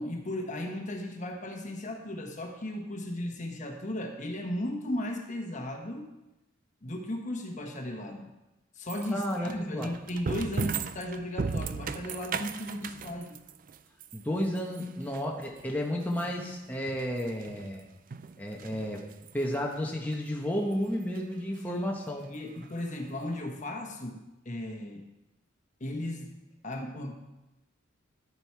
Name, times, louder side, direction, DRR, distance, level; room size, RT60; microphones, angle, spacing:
voice 1, 0.0-6.1 6.8-8.3 8.7-13.4 21.6-21.9 22.3-25.1 25.8-26.3 26.6-27.1, left 1 dB, 35° left, 3 dB, 1.2 m, -36 dB
sound 1, 8.9-17.8 18.1-19.5 19.9-20.2 20.7-20.8 21.2-21.3 21.5-21.6 22.6-22.7 22.9-23.0, right 5 dB, 40° right, 0.4 m, -37 dB
voice 2, 9.1-9.9 14.1-17.9 18.4-19.0 19.3-22.2, equal, 10° left, -1 dB, 1.0 m, -32 dB
11.0 x 7.8 x 4.6 m, 0.97 s
head